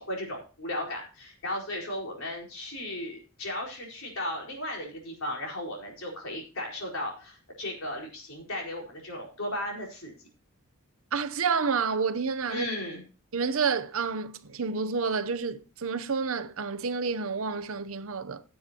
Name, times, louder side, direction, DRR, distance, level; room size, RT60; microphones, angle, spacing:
voice 1, 0.0-10.1 12.5-13.0, left 1 dB, 65° left, 4.5 m, -35 dB
voice 2, 11.1-12.7 13.3-18.4, right 5 dB, 70° right, 0.7 m, -29 dB
16.5 x 7.9 x 2.9 m
head